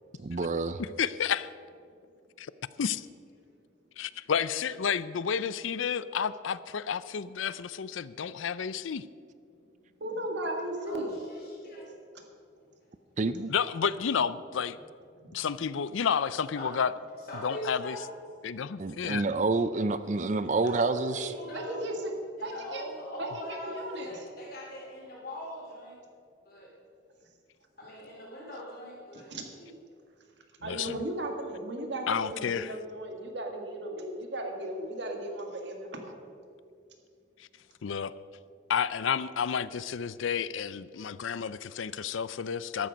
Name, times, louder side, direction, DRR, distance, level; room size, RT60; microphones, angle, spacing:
voice 1, 0.2-0.8 13.2-13.5 18.8-21.3, right 3 dB, 35° right, 13 dB, 0.4 m, -28 dB
voice 2, 0.8-1.5 2.4-2.5 2.8-3.1 4.0-9.1 13.5-14.8 15.3-16.9 17.4-18.0 18.4-19.3 30.6-30.9 32.1-32.7 37.4-37.5 37.8-38.1 38.7-42.9, left 7 dB, 75° left, 16 dB, 0.5 m, -31 dB
voice 3, 10.0-11.1 15.2-15.3 21.5-22.1 22.4-22.8 23.2-24.2 29.1-29.5 30.6-36.3, right 1 dB, 60° right, 3 dB, 1.9 m, -36 dB
voice 4, 10.8-11.8 16.5-16.7 17.3-18.1 20.6-21.8 22.4-26.0 26.4-26.7 27.8-29.8, equal, 50° left, -4 dB, 3.4 m, -41 dB
13.5 x 12.5 x 5.2 m, 2.4 s
head